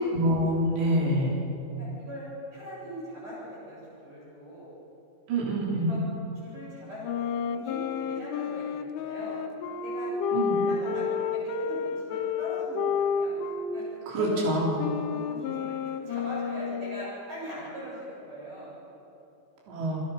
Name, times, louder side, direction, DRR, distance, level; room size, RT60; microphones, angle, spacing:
voice 1, 0.0-1.4 5.3-5.9 10.3-10.5 14.1-14.8 19.7-20.0, right 1 dB, 60° right, -3 dB, 5.8 m, -26 dB
voice 2, 0.9-1.4 1.8-4.7 5.9-6.0 6.4-9.4 9.8-10.1 10.5-11.1 11.3-13.4 13.7-13.8 14.2-14.3 15.1-15.7 16.1-18.7, equal, 40° right, -7 dB, 9.4 m, -41 dB
sound 1, 7.0-13.7 14.2-17.2, left 6 dB, 85° left, 3.5 m, -30 dB
29.5 x 22.0 x 5.8 m, 2.9 s
omnidirectional pair, 5.8 m